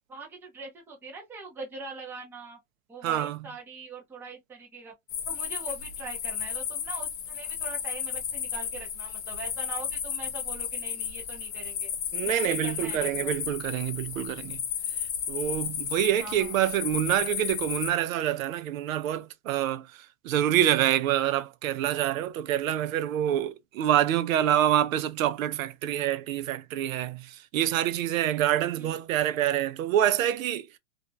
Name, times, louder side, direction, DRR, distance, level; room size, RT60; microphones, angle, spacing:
voice 1, 0.1-2.6 2.9-4.9 5.3-11.9 12.2-13.4 16.2-16.6 28.8-29.0, right 4 dB, 5° right, 0.5 m, -42 dB
voice 2, 3.0-3.4 12.1-14.6 15.3-30.7, right 11 dB, 80° right, 0.5 m, -26 dB
sound 1, 5.1-17.9, left 8 dB, 40° left, 0.6 m, -33 dB
2.4 x 2.1 x 2.5 m
supercardioid pair, 145°, 40 cm